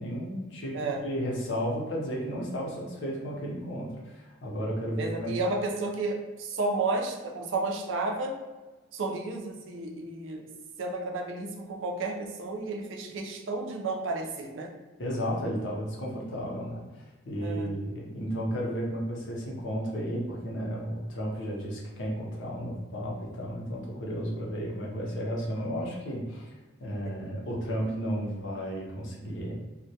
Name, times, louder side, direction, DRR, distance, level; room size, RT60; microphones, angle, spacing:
voice 1, 0.0-5.3 15.0-26.5 26.8-29.5, equal, 75° left, -3 dB, 0.6 m, -33 dB
voice 2, 0.7-1.1 5.0-8.4 8.9-10.5 10.8-14.7 17.4-17.7, right 3 dB, 85° right, 2 dB, 0.4 m, -32 dB
2.1 x 2.1 x 2.7 m, 1.2 s
head